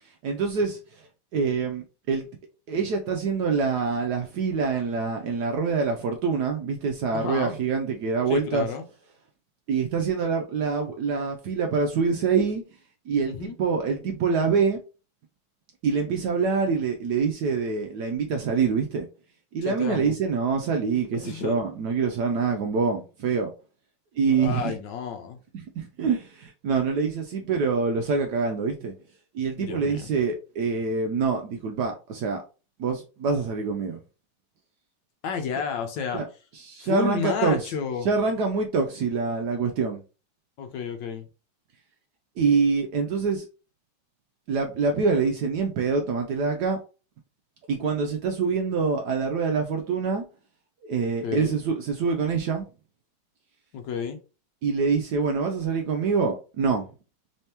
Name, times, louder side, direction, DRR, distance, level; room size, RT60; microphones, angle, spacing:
voice 1, 0.2-0.8 1.3-2.3 2.7-8.7 9.7-12.6 13.1-14.8 15.8-19.1 19.5-23.5 24.1-24.8 25.5-28.9 29.3-32.4 32.8-34.0 36.1-36.3 36.5-37.6 38.0-40.0 42.4-43.4 44.5-46.8 47.7-50.2 50.8-52.7 54.6-56.9, right 5 dB, 75° right, 0.9 m, -25 dB
voice 2, 7.1-7.6 8.3-8.8 13.2-13.6 19.6-20.1 21.1-21.6 24.3-25.4 29.6-30.1 35.2-36.2 36.8-38.1 40.6-41.3 51.2-51.6 53.7-54.2, left 6 dB, 75° left, 1.2 m, -31 dB
3.4 x 3.3 x 2.8 m
omnidirectional pair, 2.2 m